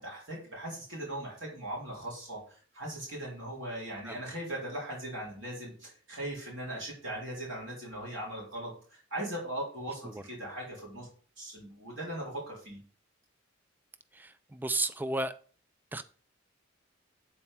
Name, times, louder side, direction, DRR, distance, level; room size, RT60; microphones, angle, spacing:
voice 1, 0.0-11.1 11.4-12.8, right 1 dB, 65° right, 4.1 m, -39 dB
voice 2, 14.1-15.3 15.9-16.0, right 2 dB, 10° right, 0.3 m, -33 dB
8.5 x 4.4 x 5.6 m
head